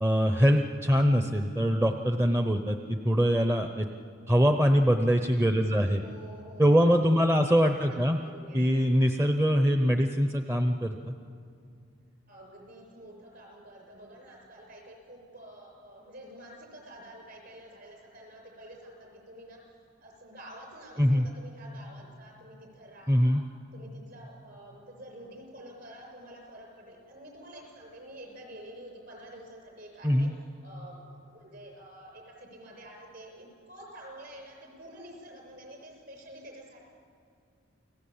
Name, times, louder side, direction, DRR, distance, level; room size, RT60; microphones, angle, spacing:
voice 1, 0.0-3.9 4.3-6.0 6.6-8.2 8.5-11.1 21.0-21.3 23.1-23.4 30.0-30.3, equal, 15° right, 5 dB, 0.7 m, -23 dB
voice 2, 6.0-8.0 8.2-8.8 12.3-19.6 20.0-23.3 23.7-30.3 30.6-36.9, right 1 dB, 50° right, 2 dB, 6.9 m, -48 dB
29.5 x 18.5 x 8.7 m, 2.4 s
head